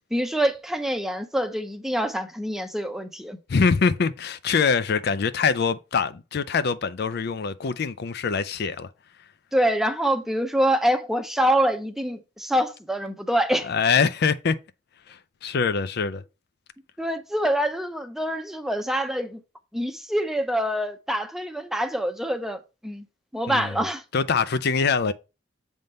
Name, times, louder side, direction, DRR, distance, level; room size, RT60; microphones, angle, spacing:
voice 1, 0.1-3.4 9.5-13.7 17.0-19.4 19.7-23.0 23.3-24.0, right 1 dB, ahead, 0.7 m, -25 dB
voice 2, 3.5-8.9 13.6-14.6 15.1-16.2 23.5-23.7 24.1-25.1, left 5 dB, 50° left, 0.4 m, -24 dB
7.7 x 3.6 x 5.3 m
head